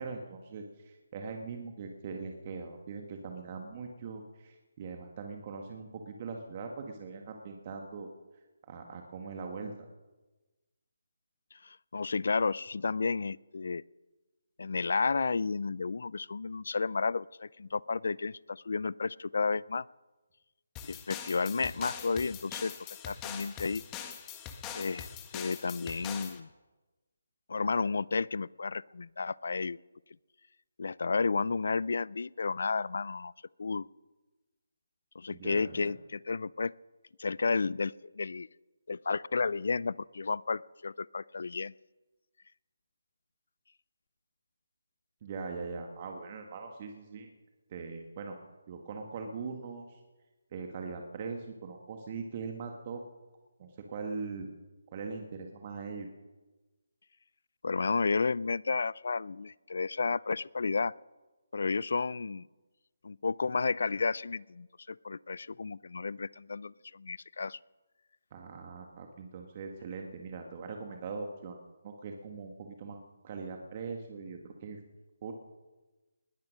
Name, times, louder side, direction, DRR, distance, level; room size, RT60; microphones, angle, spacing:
voice 1, 0.0-8.1 8.7-9.7 35.3-35.9 45.2-47.3 47.7-48.4 48.7-50.0 50.5-53.0 53.6-54.5 54.9-56.1 68.3-71.6 71.8-74.8 75.2-75.3, right 4 dB, 35° right, 3 dB, 1.7 m, -41 dB
voice 2, 11.5-13.8 14.6-19.8 20.8-22.7 23.1-23.8 24.7-25.1 25.3-26.5 27.5-29.8 30.8-33.3 33.6-33.9 35.1-36.7 37.2-38.5 38.9-41.7 57.6-60.9 61.5-62.5 63.0-67.6, left 4 dB, 65° left, 23 dB, 0.4 m, -32 dB
sound 1, 20.8-26.4, left 8 dB, 15° left, 1.4 m, -43 dB
20.5 x 10.5 x 6.4 m, 1.2 s
figure-of-eight pair, 160°, 0 cm